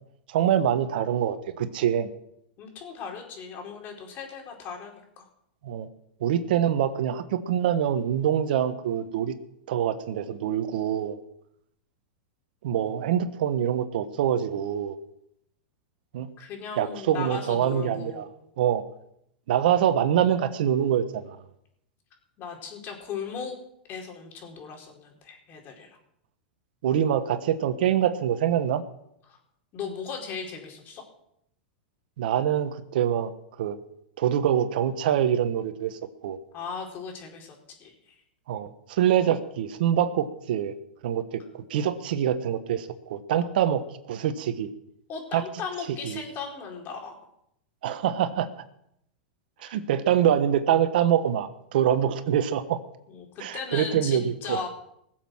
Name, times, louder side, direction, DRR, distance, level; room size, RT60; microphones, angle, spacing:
voice 1, 0.3-2.1 5.6-5.9 6.2-9.3 9.7-11.2 12.6-14.9 16.1-16.3 16.8-18.2 18.6-18.8 19.5-21.3 26.8-28.8 32.2-33.3 33.6-33.8 34.2-36.4 38.5-40.7 41.0-41.4 41.7-44.7 45.3-45.4 46.0-46.2 47.8-48.5 49.6-52.8 53.4-54.6, right 10 dB, 70° right, 11 dB, 1.2 m, -25 dB
voice 2, 2.6-5.3 16.4-18.3 22.4-23.5 23.9-26.0 29.3-29.4 29.7-31.0 36.5-38.1 45.1-47.1 49.7-49.8 53.1-54.7, left 6 dB, 40° left, 1 dB, 4.5 m, -37 dB
20.0 x 7.6 x 6.3 m, 0.75 s
hypercardioid pair, 120°, 5 cm